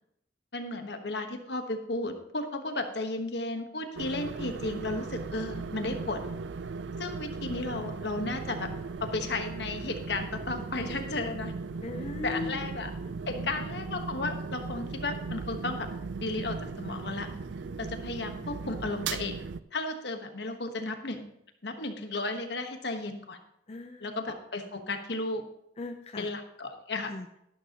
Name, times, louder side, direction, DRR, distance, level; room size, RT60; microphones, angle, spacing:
voice 1, 0.5-6.2 7.0-8.7 9.0-11.5 12.2-12.9 13.3-15.9 16.2-17.3 17.8-19.4 19.7-21.3 21.6-23.4 24.0-25.4 26.2-27.1, left 2 dB, 65° left, 6 dB, 1.3 m, -34 dB
sound 1, 4.0-19.6, right 4 dB, 85° right, 0.5 m, -37 dB
voice 2, 11.8-12.9 13.3-13.6 23.7-24.2 25.8-26.3 27.0-27.3, left 3 dB, 35° left, 5 dB, 0.6 m, -39 dB
12.0 x 12.0 x 2.9 m, 0.79 s
head